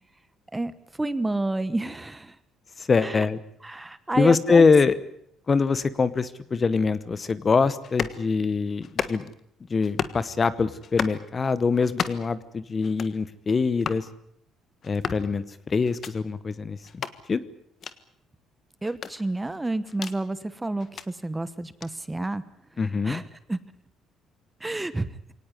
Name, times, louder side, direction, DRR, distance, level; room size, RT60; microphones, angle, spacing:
voice 1, 1.0-2.3 3.0-3.2 3.6-4.6 18.8-22.4 23.0-23.2 23.5-23.6 24.6-25.1, right 2 dB, 10° right, 15 dB, 1.1 m, -29 dB
voice 2, 2.8-3.4 4.1-5.0 5.5-9.3 9.7-14.1 14.8-17.0 17.3-17.4 22.8-23.2, left 4 dB, 25° left, 16 dB, 1.0 m, -23 dB
sound 1, 7.8-8.2 8.8-9.4 9.8-10.2 10.8-11.2 11.8-12.3 12.8-13.2 13.8-14.0 14.8-15.3 15.8-16.1 16.8-17.2 17.8-18.0 18.8-20.2 20.8-21.1 21.8-21.9, left 7 dB, 40° left, 1.4 m, -33 dB
23.5 x 18.5 x 9.8 m, 0.71 s
cardioid pair, 145°, 0 cm